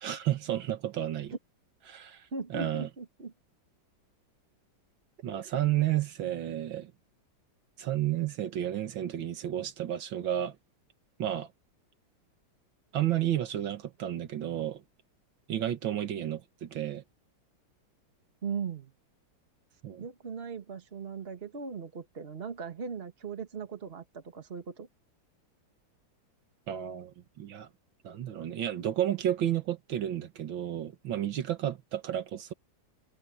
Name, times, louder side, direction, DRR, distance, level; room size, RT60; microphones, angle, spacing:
voice 1, 0.0-1.3 1.9-2.9 5.2-6.9 7.8-10.6 11.2-11.5 12.9-14.8 15.5-17.0 19.8-20.1 26.7-27.7 28.0-32.5, right 11 dB, 80° right, 2.0 m, -32 dB
voice 2, 2.3-3.3 5.4-5.5 18.4-18.9 20.0-24.9, right 5 dB, 30° right, 1.8 m, -39 dB
omnidirectional pair, 2.1 m